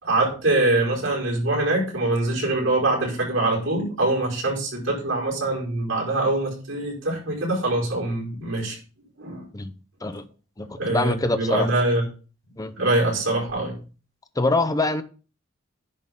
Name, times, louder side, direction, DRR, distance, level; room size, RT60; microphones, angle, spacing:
voice 1, 0.0-8.8 9.2-9.5 10.8-12.0 12.8-13.8, right 2 dB, 80° right, 5.1 m, -24 dB
voice 2, 10.6-11.7 12.6-12.7 14.4-15.0, left 2 dB, 20° left, 0.7 m, -24 dB
10.5 x 3.8 x 5.4 m
head